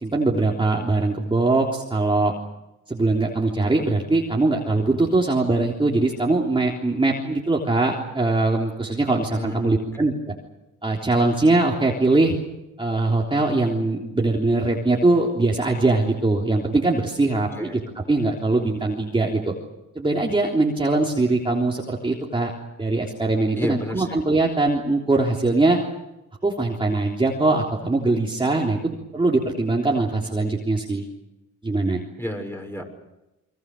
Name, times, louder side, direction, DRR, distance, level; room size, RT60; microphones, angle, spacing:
voice 1, 0.0-2.3 2.9-10.3 10.8-12.3 12.8-17.8 18.1-19.5 20.0-22.5 22.8-25.8 26.4-31.0 31.6-32.0, right 2 dB, 15° right, -1 dB, 3.5 m, -21 dB
voice 2, 9.3-9.7 17.6-17.8 23.6-24.2 32.2-32.8, left 1 dB, 5° left, 3 dB, 6.3 m, -31 dB
28.5 x 23.0 x 6.7 m, 0.95 s
cardioid pair, 90°, 30 cm